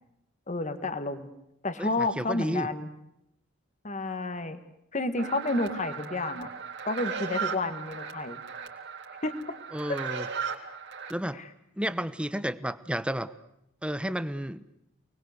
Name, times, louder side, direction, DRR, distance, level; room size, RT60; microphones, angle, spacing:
voice 1, 0.5-1.3 1.6-2.9 3.8-4.6 4.9-6.5 6.9-8.4 9.2-9.6 9.9-10.0 11.3-11.5, left 2 dB, 35° left, 10 dB, 2.0 m, -30 dB
voice 2, 1.8-2.7 9.7-10.3 11.1-11.4 11.8-13.3 13.8-14.6, equal, 5° right, 14 dB, 1.1 m, -31 dB
sound 1, 5.2-11.1, right 6 dB, 60° right, 3.9 m, -37 dB
29.5 x 21.0 x 8.2 m, 0.83 s
head